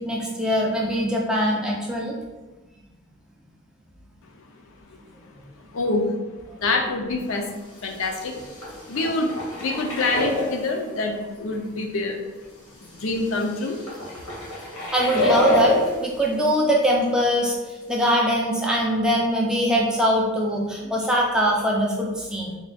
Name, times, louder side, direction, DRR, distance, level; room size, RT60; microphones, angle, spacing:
voice 1, 0.0-2.2 14.9-15.7 16.0-17.5 17.9-22.6, equal, 5° right, -2 dB, 0.4 m, -22 dB
voice 2, 5.7-6.1 6.6-7.5 7.8-12.2 12.7-13.8, left 2 dB, 65° left, 3 dB, 0.5 m, -26 dB
sound 1, 7.4-7.5 7.8-10.8 11.5-11.6 12.8-16.5 16.8-17.0 17.4-17.5 18.0-18.1, left 1 dB, 80° left, 1.2 m, -27 dB
3.9 x 2.3 x 3.3 m, 1.2 s
head